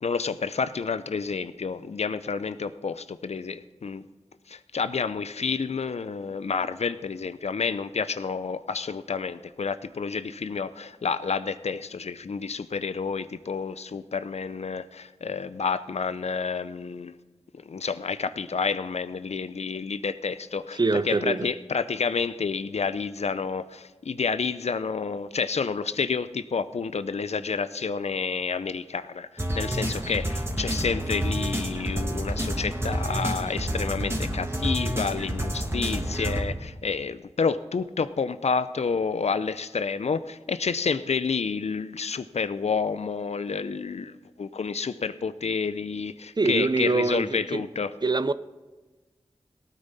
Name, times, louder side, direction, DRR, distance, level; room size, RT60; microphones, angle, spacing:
voice 1, 0.0-4.1 4.5-17.2 17.5-47.9, left 5 dB, 80° left, 0.5 m, -29 dB
voice 2, 20.8-21.5 46.4-47.6 48.0-48.3, right 3 dB, 40° right, 0.6 m, -24 dB
sound 1, 29.4-36.4, right 1 dB, 20° right, 2.1 m, -29 dB
18.0 x 9.2 x 4.1 m
cardioid pair, 40°, 11 cm